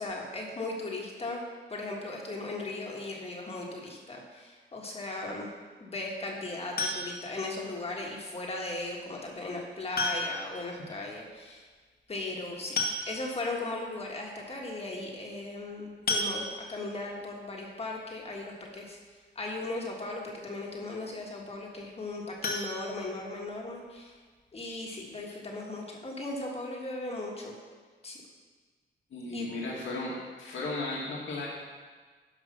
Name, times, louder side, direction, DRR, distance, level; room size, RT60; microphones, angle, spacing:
voice 1, 0.0-1.4 1.7-5.5 5.8-11.6 12.1-12.8 13.1-19.0 19.3-24.1 24.5-27.6 28.0-28.2 29.3-29.5, left 2 dB, 30° left, -1 dB, 1.4 m, -37 dB
sound 1, 6.8-7.4 8.9-9.0 10.0-10.6 10.9-11.0 11.3-11.4 12.4-12.5 12.8-13.5 14.0-14.1 14.5-14.6 16.1-16.9 22.4-23.6 24.0-24.1 24.5-24.6 25.0-25.1, left 2 dB, 50° left, 1.3 m, -32 dB
voice 2, 29.1-30.1 30.4-31.5, left 2 dB, 85° left, -5 dB, 2.1 m, -35 dB
12.0 x 5.0 x 5.9 m, 1.4 s
wide cardioid pair, 160°, 20 cm